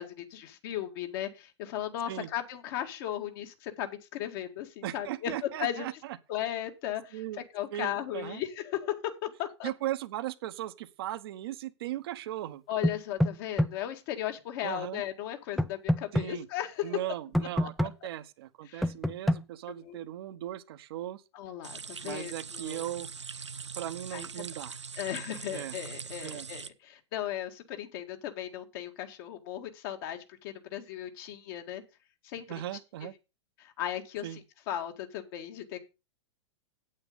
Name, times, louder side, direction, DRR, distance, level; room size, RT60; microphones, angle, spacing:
voice 1, 0.0-5.9 6.3-7.2 7.5-9.0 9.4-9.7 12.7-17.0 17.6-17.7 18.7-18.9 19.8-20.0 21.3-22.8 24.1-24.3 25.0-31.8 32.2-32.5 33.0-33.1 33.6-34.4 34.7-35.8, left 11 dB, 50° left, 1.9 m, -36 dB
voice 2, 4.8-6.2 7.1-7.4 7.7-8.4 9.6-12.6 14.6-15.0 16.1-16.5 16.8-21.2 22.0-23.1 23.8-24.8 25.5-25.7 26.2-26.5 32.5-33.1 34.2-34.4, right 13 dB, 60° right, 1.0 m, -37 dB
sound 1, 12.8-13.7 15.6-16.3 17.3-17.9 18.8-19.4, equal, ahead, 0.5 m, -26 dB
sound 2, 21.6-26.7, right 5 dB, 90° right, 0.8 m, -42 dB
8.8 x 8.6 x 5.2 m
figure-of-eight pair, 100°, 15 cm